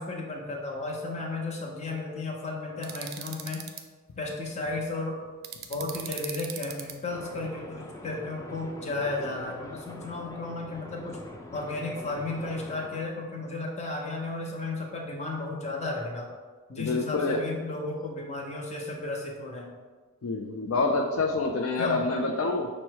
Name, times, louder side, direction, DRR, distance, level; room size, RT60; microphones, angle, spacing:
voice 1, 0.0-3.7 4.2-5.2 5.7-11.2 11.5-16.3 16.7-19.7 21.8-22.0, left 2 dB, 35° left, -1 dB, 0.8 m, -34 dB
sound 1, 2.8-3.8 5.4-6.9, right 9 dB, 50° right, 0.4 m, -38 dB
sound 2, 7.1-13.1, left 1 dB, 15° left, 0.4 m, -44 dB
voice 2, 16.8-17.4 20.2-22.7, left 3 dB, 75° left, 3 dB, 0.4 m, -27 dB
5.5 x 2.1 x 4.6 m, 1.4 s
head